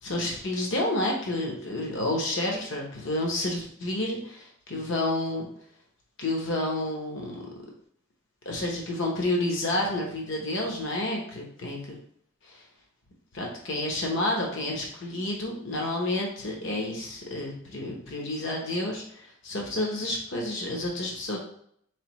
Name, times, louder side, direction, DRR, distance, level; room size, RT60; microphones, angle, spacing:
voice 1, 0.0-5.5 6.2-7.4 8.4-12.0 12.4-12.6 13.3-21.4, left 1 dB, 60° left, 0 dB, 0.9 m, -30 dB
4.0 x 3.2 x 3.0 m, 0.67 s
head